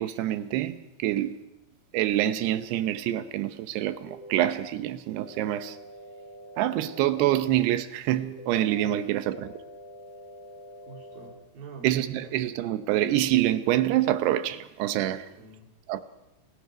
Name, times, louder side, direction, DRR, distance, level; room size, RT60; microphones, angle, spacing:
voice 1, 0.0-1.4 1.9-5.8 6.6-9.4 11.8-15.3 15.9-16.0, right 13 dB, 85° right, 3.0 m, -26 dB
sound 1, 4.1-4.7 5.2-7.2 8.2-8.8 9.3-11.3, left 1 dB, 30° left, 2.4 m, -45 dB
voice 2, 8.8-9.2 10.9-12.4 15.4-15.7, right 4 dB, 60° right, 4.9 m, -46 dB
29.5 x 18.5 x 5.1 m
omnidirectional pair, 4.7 m